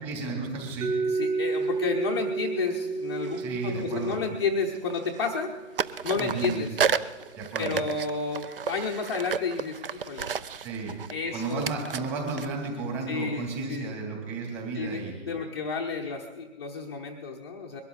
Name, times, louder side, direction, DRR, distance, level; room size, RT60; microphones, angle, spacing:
voice 1, 0.0-0.9 3.4-4.2 6.2-6.6 7.4-7.8 10.6-10.9 11.3-15.3, right 4 dB, 25° right, 0 dB, 3.2 m, -33 dB
Mallet percussion, 0.8-6.6, right 4 dB, 80° right, 1.6 m, -32 dB
voice 2, 1.0-5.5 6.0-6.7 7.6-10.3 11.1-11.7 13.1-13.9 14.7-15.0 15.3-17.8, left 4 dB, 20° left, -1 dB, 0.6 m, -31 dB
sound 1, 1.6-1.8 3.2-4.5 4.7-5.5 5.8-13.5, right 6 dB, 45° right, 0.5 m, -33 dB
22.0 x 12.5 x 4.1 m, 1.3 s
hypercardioid pair, 160°, 39 cm